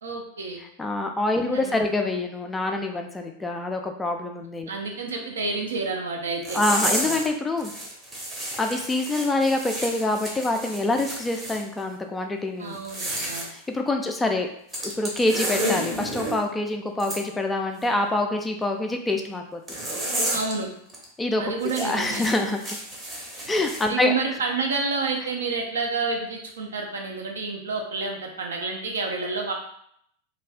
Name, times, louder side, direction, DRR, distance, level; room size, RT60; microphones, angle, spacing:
voice 1, 0.0-0.6 1.4-1.7 4.7-6.6 12.6-13.5 20.3-20.7 21.4-22.2 23.9-29.5, right 4 dB, 65° right, 1 dB, 0.5 m, -29 dB
voice 2, 0.6-4.7 6.5-7.7 8.6-12.8 13.2-14.5 15.0-19.6 21.2-21.4 21.8-22.8 23.5-24.1, left 2 dB, 10° left, 3 dB, 0.3 m, -26 dB
sound 1, 6.4-7.3 7.6-11.6 12.7-13.5 14.7-16.4 17.0-17.2 19.7-20.5 20.9-21.0 21.6-23.8, right 1 dB, 15° right, 0.7 m, -31 dB
2.4 x 2.3 x 3.3 m, 0.71 s
figure-of-eight pair, 90°, 0 cm